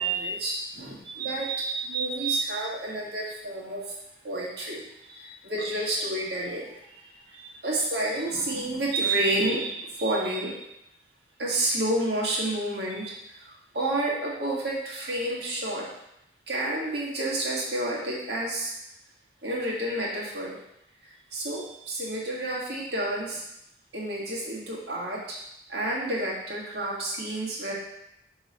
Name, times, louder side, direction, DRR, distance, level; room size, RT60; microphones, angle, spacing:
voice 1, 0.0-4.0 4.2-10.6 11.4-15.9 16.5-18.7 19.4-20.6 21.0-23.4 23.9-25.4 25.7-27.7, right 2 dB, 60° right, -5 dB, 1.7 m, -30 dB
5.9 x 3.2 x 5.3 m, 0.82 s
head